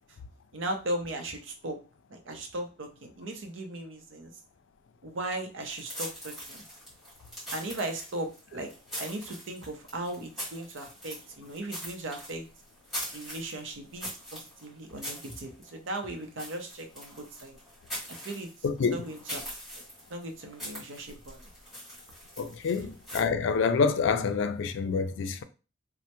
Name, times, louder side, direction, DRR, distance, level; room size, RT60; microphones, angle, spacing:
voice 1, 0.5-1.8 2.1-4.3 5.0-6.6 7.5-8.7 9.0-12.5 13.1-17.6 18.1-18.5 18.9-19.4 20.1-21.4 22.8-22.9, right 1 dB, 85° right, 0.6 m, -37 dB
sound 1, 5.6-23.2, equal, ahead, 1.7 m, -42 dB
voice 2, 18.6-19.1 22.4-25.4, left 5 dB, 80° left, 0.4 m, -27 dB
3.2 x 2.1 x 2.9 m
head